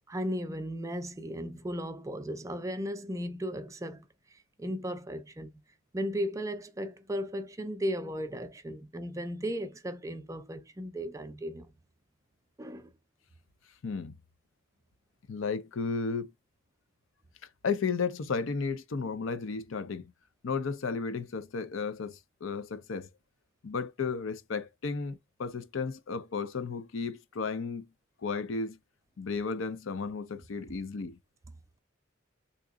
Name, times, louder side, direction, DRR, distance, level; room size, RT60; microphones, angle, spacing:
voice 1, 0.0-4.0 4.6-5.5 5.9-11.7 12.6-12.9, equal, 15° right, 0.4 m, -36 dB
voice 2, 13.8-14.2 15.3-16.3 17.6-20.1 20.4-23.1 23.6-27.9 28.2-28.8 29.2-31.2, left 4 dB, 75° left, 0.5 m, -33 dB
3.7 x 2.9 x 2.2 m
head